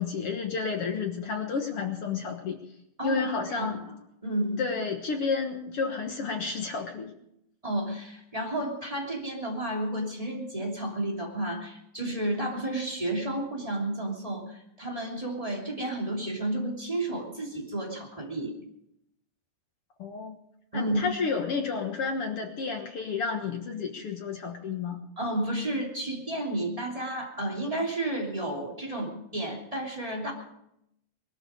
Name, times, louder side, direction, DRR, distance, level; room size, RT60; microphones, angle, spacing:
voice 1, 0.0-2.6 3.0-3.8 4.6-7.1 20.0-20.4 20.7-25.0, left 5 dB, 55° left, 3 dB, 1.8 m, -31 dB
voice 2, 3.0-3.9 4.2-4.7 7.6-18.5 20.7-21.0 25.2-30.3, right 1 dB, 10° right, -1 dB, 2.6 m, -32 dB
20.5 x 13.5 x 5.1 m, 0.77 s
omnidirectional pair, 4.0 m